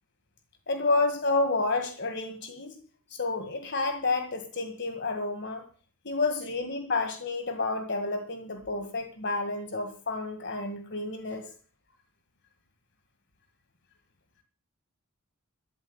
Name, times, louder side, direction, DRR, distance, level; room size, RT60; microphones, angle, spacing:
voice 1, 0.7-2.8 3.1-5.6 6.0-11.4, left 3 dB, 55° left, 6 dB, 2.0 m, -30 dB
13.0 x 9.7 x 8.9 m, 0.43 s
head